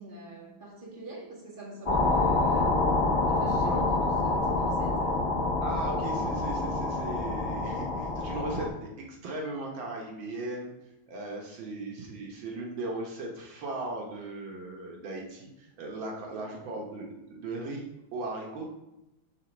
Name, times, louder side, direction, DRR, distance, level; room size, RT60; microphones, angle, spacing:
voice 1, 0.0-2.8 3.3-5.2 16.4-16.7, right 2 dB, 25° right, -4 dB, 1.9 m, -44 dB
sound 1, 1.9-8.7, left 2 dB, 30° left, 0.6 m, -27 dB
voice 2, 5.6-10.7 11.1-17.8 18.1-18.7, right 2 dB, 80° right, 0 dB, 1.8 m, -37 dB
6.4 x 4.1 x 6.0 m, 0.94 s
omnidirectional pair, 2.1 m